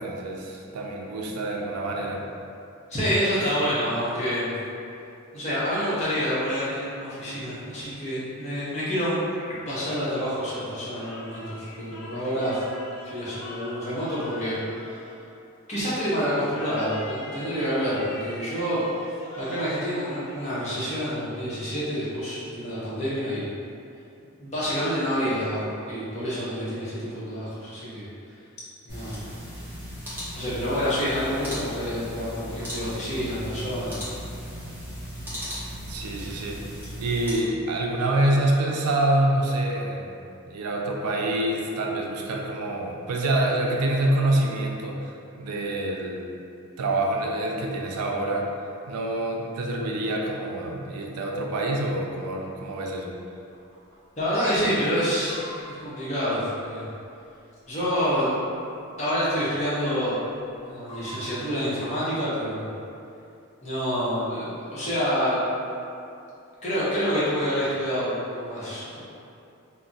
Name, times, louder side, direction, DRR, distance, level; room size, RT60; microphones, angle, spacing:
voice 1, 0.0-2.2 35.9-36.6 37.0-46.2 46.8-48.5 48.9-53.1, right 1 dB, 85° right, 0 dB, 0.4 m, -26 dB
voice 2, 2.9-4.5 5.3-9.2 9.7-12.6 13.0-14.6 15.7-18.9 19.4-23.5 24.4-28.1 28.8-29.2 30.3-34.0 54.2-56.9 57.7-58.3 59.0-60.2 60.6-62.7 63.6-65.4 66.6-69.0, equal, 30° left, -10 dB, 0.7 m, -27 dB
sound 1, 10.9-15.7 16.4-20.8, left 1 dB, 70° left, 0.4 m, -43 dB
sound 2, 28.9-37.3, equal, 10° right, 0.6 m, -37 dB
Chicken rooster, 53.5-54.0 54.2-54.3 54.8-57.0 57.8-58.5 58.8-59.1 59.4-59.8 60.3-61.4, equal, 55° right, 0.9 m, -45 dB
2.3 x 2.0 x 3.8 m, 2.6 s
head